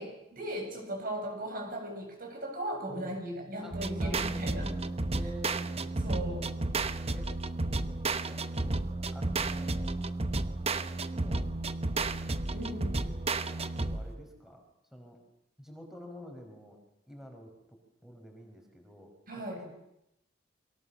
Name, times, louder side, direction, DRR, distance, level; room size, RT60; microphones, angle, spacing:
voice 1, 0.0-4.7 6.0-6.5 12.5-12.9 19.3-19.6, right 1 dB, 50° right, 3 dB, 7.8 m, -37 dB
voice 2, 2.9-3.2 3.6-7.3 7.7-10.0 11.1-12.2 12.5-13.2 13.5-14.6 14.9-15.2 15.6-16.8 17.1-17.8 18.0-19.1 19.4-19.7, equal, ahead, 2 dB, 4.8 m, -50 dB
sound 1, 3.7-14.2, right 2 dB, 35° right, 1.1 m, -32 dB
29.0 x 24.0 x 6.9 m, 0.82 s
head